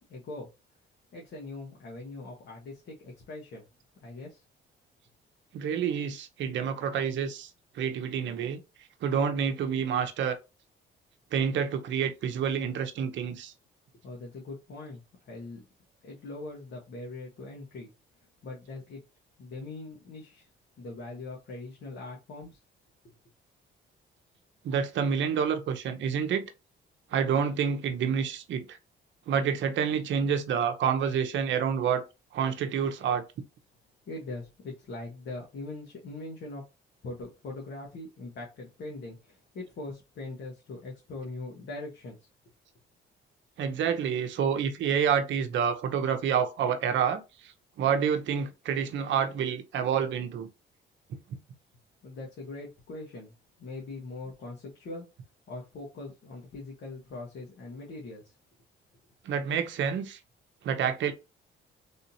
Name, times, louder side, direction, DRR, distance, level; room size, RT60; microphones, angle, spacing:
voice 1, 0.1-0.5 1.1-3.7 4.0-4.4 14.0-15.6 16.0-17.9 18.4-19.0 19.4-20.5 20.8-22.6 23.0-23.2 34.1-36.6 37.0-42.2 52.0-53.3 53.6-55.1 55.5-58.3, left 2 dB, 60° left, 1.2 m, -41 dB
voice 2, 5.5-7.5 7.7-8.6 9.0-10.4 11.3-13.5 24.6-26.4 27.1-28.8 29.3-32.0 32.3-33.2 43.6-47.5 47.8-50.5 51.1-51.4 59.2-60.2 60.6-61.1, right 7 dB, 70° right, 0.7 m, -28 dB
3.5 x 2.8 x 2.7 m
cardioid pair, 90°, 20 cm